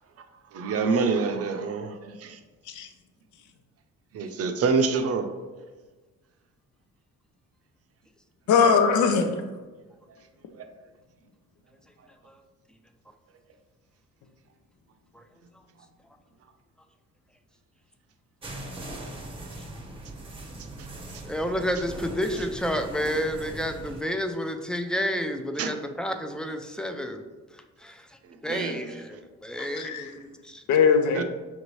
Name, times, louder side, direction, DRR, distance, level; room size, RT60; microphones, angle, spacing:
voice 1, 0.5-2.4 4.1-5.3 10.5-10.7 21.1-21.2 25.6-25.7 28.5-29.2 31.1-31.2, right 4 dB, 50° right, 6 dB, 0.5 m, -27 dB
voice 2, 8.5-9.4 29.6-30.1 30.7-31.2, left 5 dB, 75° left, 6 dB, 0.5 m, -21 dB
sound 1, 18.4-24.0, right 2 dB, 20° right, 0.7 m, -40 dB
voice 3, 21.2-27.2 27.8-28.1 28.4-30.6, equal, 5° left, 6 dB, 0.4 m, -30 dB
5.9 x 2.7 x 3.1 m, 1.3 s
cardioid pair, 90°, 30 cm